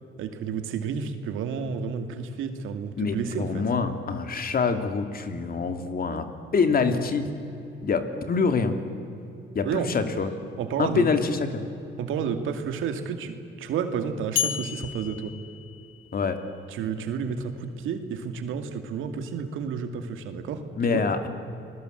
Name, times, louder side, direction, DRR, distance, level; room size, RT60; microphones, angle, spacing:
voice 1, 0.2-3.6 9.6-9.9 10.6-11.1 12.0-15.3 16.7-20.6 20.9-21.0, right 6 dB, 85° right, 7 dB, 2.4 m, -31 dB
voice 2, 3.0-6.2 6.5-7.3 7.8-8.7 9.5-10.3 10.8-11.6 16.1-16.4 20.8-21.3, left 5 dB, 50° left, 8 dB, 2.7 m, -25 dB
sound 1, 14.4-16.4, left 11 dB, 80° left, 1.0 m, -32 dB
30.0 x 20.5 x 8.0 m, 2.7 s
cardioid pair, 90°, 20 cm